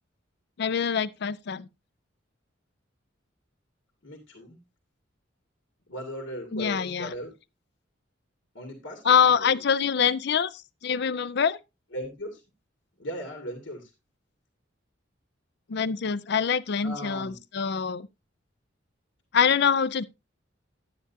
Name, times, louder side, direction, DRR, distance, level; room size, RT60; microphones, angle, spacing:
voice 1, 0.6-1.7 6.5-7.1 9.0-11.6 15.7-18.1 19.3-20.0, left 7 dB, 60° left, 0.5 m, -24 dB
voice 2, 4.0-4.6 5.9-7.3 8.5-9.6 11.9-12.4 13.0-13.9 16.8-17.4, equal, 80° left, 2.2 m, -38 dB
11.0 x 9.6 x 2.7 m
head